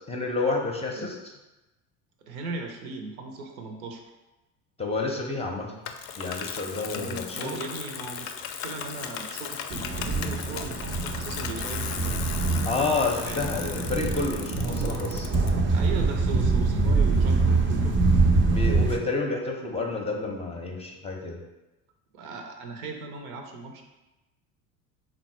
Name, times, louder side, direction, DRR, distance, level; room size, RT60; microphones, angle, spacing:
voice 1, 0.1-1.2 4.8-5.7 6.2-7.6 12.6-15.3 18.4-21.4, left 3 dB, 15° left, 0 dB, 0.6 m, -29 dB
voice 2, 2.3-4.0 6.9-8.3 8.6-12.2 13.2-13.4 15.7-18.0 22.1-23.8, right 3 dB, 75° right, 3 dB, 0.7 m, -38 dB
Bicycle, 5.8-15.5, left 8 dB, 55° left, 0.5 m, -37 dB
sound 1, 9.7-19.0, right 3 dB, 30° right, 0.5 m, -24 dB
3.9 x 2.1 x 4.3 m, 1.0 s
hypercardioid pair, 70°, 43 cm